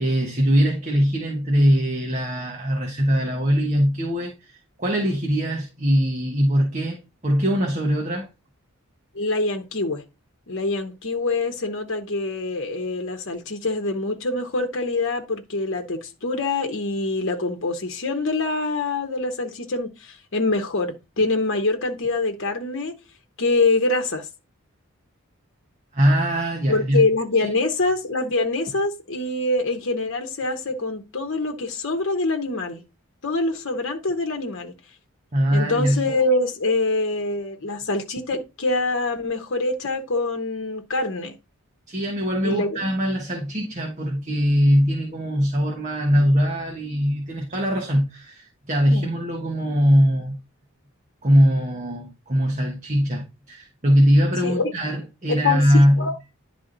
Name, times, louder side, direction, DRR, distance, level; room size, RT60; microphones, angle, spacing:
voice 1, 0.0-8.3 25.9-27.1 27.4-27.5 35.3-36.1 41.9-50.4 51.2-56.1, equal, 35° right, 1.3 m, -21 dB
voice 2, 9.1-10.0 10.5-22.9 23.4-24.3 26.7-32.8 33.2-34.7 35.5-41.4 42.4-42.9 48.9-49.1 54.4-54.7 55.3-56.1, left 2 dB, 60° left, 1.0 m, -25 dB
10.5 x 3.5 x 3.9 m
head